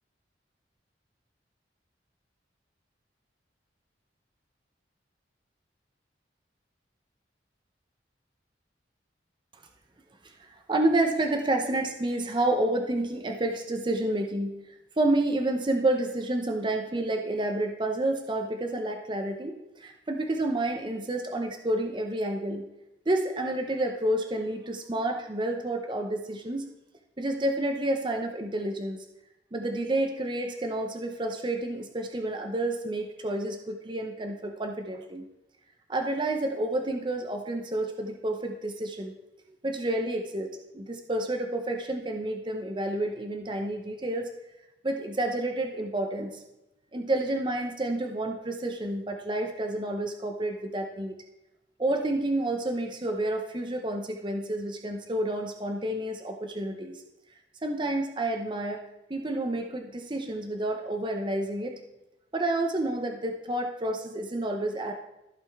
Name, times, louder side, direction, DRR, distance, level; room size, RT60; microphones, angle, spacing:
voice 1, 10.4-14.5 15.0-22.6 23.1-26.7 27.2-29.0 29.5-35.2 35.9-39.1 39.6-40.5 40.7-44.3 44.8-46.4 46.9-51.2 51.8-57.0 57.6-58.8 59.1-61.7 62.3-64.9, right 1 dB, 25° right, 3 dB, 0.7 m, -29 dB
14.5 x 5.2 x 3.5 m, 0.94 s
head